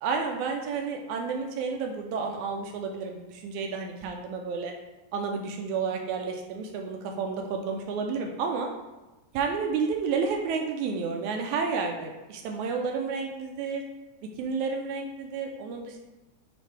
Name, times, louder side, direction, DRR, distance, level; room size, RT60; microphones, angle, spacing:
voice 1, 0.0-4.7 5.1-8.7 9.3-13.8 14.4-16.0, right 5 dB, 80° right, 2 dB, 1.9 m, -31 dB
9.2 x 3.4 x 3.3 m, 1.1 s
omnidirectional pair, 3.6 m